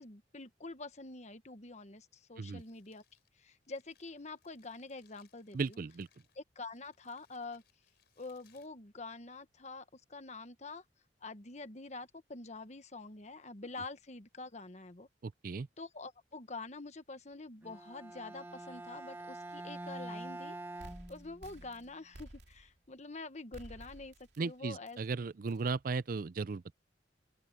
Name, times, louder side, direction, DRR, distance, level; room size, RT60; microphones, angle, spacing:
voice 1, 0.0-3.0 3.4-5.8 6.3-7.6 8.2-10.8 11.2-15.1 15.8-24.1 24.4-25.0, left 3 dB, 40° left, 1.3 m, -46 dB
Crumpling crinkling, 2.2-9.5, left 9 dB, 65° left, 5.9 m, -72 dB
voice 2, 5.5-6.1 15.2-15.7 24.4-26.7, right 4 dB, 50° right, 0.4 m, -36 dB
Bowed string instrument, 17.6-21.7, right 2 dB, 10° right, 1.2 m, -45 dB
sound 1, 20.8-22.9 23.5-24.5 24.9-25.0 25.5-25.7, right 1 dB, 70° right, 2.7 m, -53 dB
open air
head